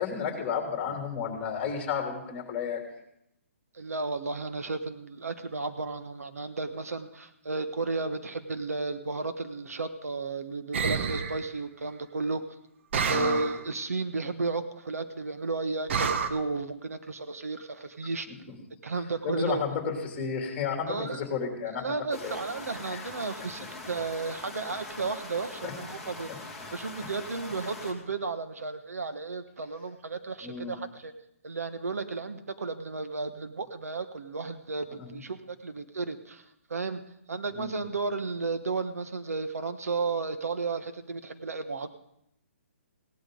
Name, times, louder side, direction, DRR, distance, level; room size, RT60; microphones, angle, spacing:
voice 1, 0.0-2.8 13.1-13.4 18.5-18.6 19.2-22.4 22.9-23.0 25.6-25.7 30.4-30.8 35.0-35.2 37.5-37.7, left 6 dB, 15° left, 2 dB, 3.0 m, -32 dB
voice 2, 3.7-12.4 13.1-18.3 18.8-19.6 20.9-21.3 21.7-26.3 26.7-31.1 31.4-36.4 36.7-37.0 37.3-41.9, right 3 dB, 90° right, 9 dB, 1.2 m, -33 dB
sound 1, 10.7-11.4 12.9-13.6 15.9-16.3, right 6 dB, 55° right, 1.0 m, -28 dB
sound 2, 22.1-27.9, left 3 dB, ahead, 2.1 m, -42 dB
17.0 x 12.0 x 3.9 m, 0.78 s
hypercardioid pair, 150°, 8 cm